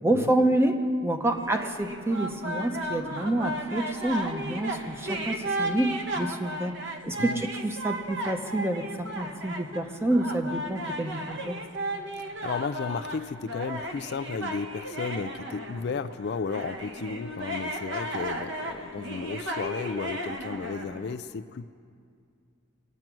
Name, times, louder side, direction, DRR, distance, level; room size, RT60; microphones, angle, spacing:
voice 1, 0.0-0.8 1.0-6.7 7.0-11.6, right 1 dB, 10° right, 5 dB, 0.8 m, -28 dB
sound 1, 1.3-21.2, right 1 dB, 55° right, 1.1 m, -35 dB
voice 2, 12.2-21.7, left 5 dB, 50° left, 10 dB, 0.3 m, -34 dB
23.0 x 9.0 x 6.0 m, 2.3 s
head